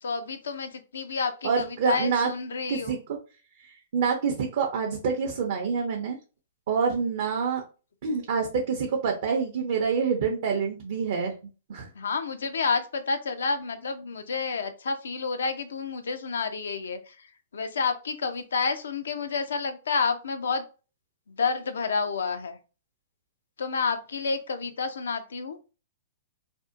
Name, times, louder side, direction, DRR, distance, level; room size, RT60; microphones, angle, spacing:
voice 1, 0.0-3.0 11.9-17.3 17.5-20.6 21.3-22.6 23.6-25.6, left 5 dB, 85° left, 8 dB, 0.4 m, -29 dB
voice 2, 1.4-2.3 2.7-3.0 3.9-6.2 6.7-7.6 8.0-11.3 11.7-11.9, right 5 dB, 60° right, 1 dB, 0.5 m, -26 dB
2.6 x 2.1 x 2.5 m, 0.33 s
hypercardioid pair, 130°, 0 cm